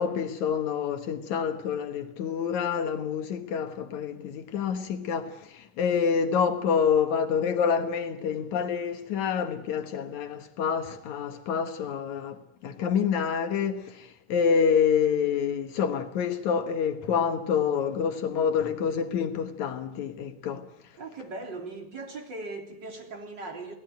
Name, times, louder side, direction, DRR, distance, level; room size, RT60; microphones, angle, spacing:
voice 1, 0.0-20.7, left 7 dB, 75° left, 2.7 m, -27 dB
voice 2, 21.0-23.8, right 3 dB, 35° right, 4.0 m, -39 dB
27.5 x 18.5 x 9.2 m
omnidirectional pair, 3.4 m